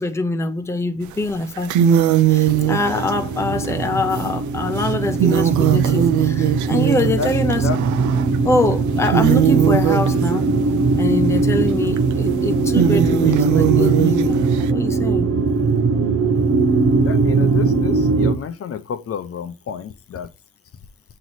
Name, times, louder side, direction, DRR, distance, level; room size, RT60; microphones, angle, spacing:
voice 1, 0.0-7.7 8.4-10.5 11.0-15.3, left 2 dB, 10° left, 0.6 m, -24 dB
sound 1, 1.1-1.2 1.5-8.5 8.9-14.7, right 11 dB, 85° right, 0.5 m, -21 dB
sound 2, 2.5-18.4, right 4 dB, 55° right, 0.8 m, -20 dB
voice 2, 17.0-20.3, left 7 dB, 50° left, 0.8 m, -29 dB
7.6 x 3.1 x 4.0 m
cardioid pair, 105°, 29 cm